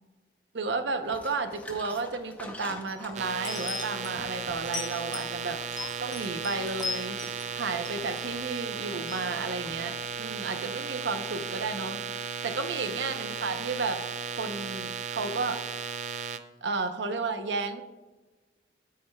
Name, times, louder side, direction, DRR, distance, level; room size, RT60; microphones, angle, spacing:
voice 1, 0.5-5.6 6.0-7.2 7.6-14.0 14.4-15.6 16.6-17.8, right 3 dB, 80° right, 8 dB, 0.7 m, -32 dB
sound 1, 1.0-10.6, left 1 dB, 10° left, 0.7 m, -48 dB
sound 2, 3.1-16.4, right 6 dB, 40° right, 0.4 m, -35 dB
sound 3, 3.4-4.1 4.6-5.3 5.7-7.5 7.8-8.6 9.1-9.2, left 5 dB, 25° left, 1.3 m, -37 dB
12.5 x 6.5 x 2.3 m, 1.2 s
head